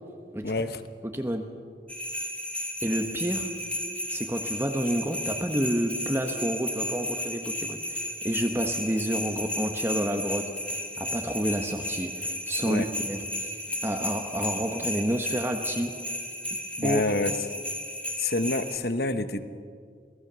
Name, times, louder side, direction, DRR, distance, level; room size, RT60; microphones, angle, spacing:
voice 1, 0.4-0.8 12.6-12.9 16.8-17.3 18.2-19.4, left 2 dB, 60° left, 10 dB, 1.1 m, -27 dB
voice 2, 1.0-1.5 2.8-3.5 4.1-13.6 13.8-16.0 16.5-17.2, equal, 15° right, 4 dB, 1.1 m, -29 dB
sound 1, 1.9-18.8, left 1 dB, 5° left, 2.1 m, -33 dB
27.0 x 19.0 x 6.9 m, 2.2 s
head